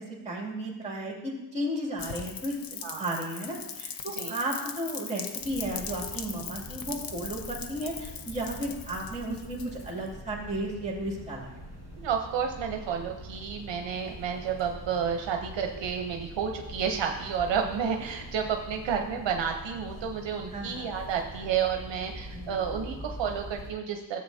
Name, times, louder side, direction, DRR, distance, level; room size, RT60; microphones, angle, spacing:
voice 1, 0.0-11.6 20.5-20.9 22.3-23.1, right 1 dB, 15° right, -2 dB, 2.5 m, -34 dB
Rain, 2.0-10.1, left 7 dB, 45° left, 0.7 m, -40 dB
sound 1, 5.4-23.7, equal, 30° left, 2.2 m, -44 dB
voice 2, 12.0-24.2, right 7 dB, 65° right, 3 dB, 0.9 m, -31 dB
13.0 x 7.7 x 2.7 m, 1.0 s
cardioid pair, 115°, 47 cm